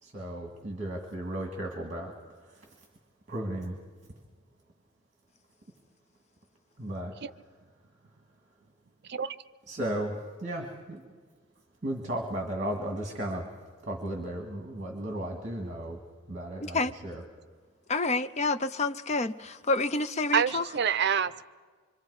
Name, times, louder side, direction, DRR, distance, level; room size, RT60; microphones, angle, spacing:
voice 1, 0.0-2.1 2.4-2.7 3.3-3.8 6.8-7.1 9.7-11.1 11.8-13.5 13.8-16.0 16.3-17.2, right 1 dB, 35° right, 2 dB, 1.9 m, -35 dB
voice 2, 17.9-20.6, left 3 dB, 30° left, 11 dB, 0.5 m, -28 dB
voice 3, 20.3-21.4, right 7 dB, 55° right, 13 dB, 0.6 m, -27 dB
26.5 x 24.5 x 4.8 m, 1.5 s
head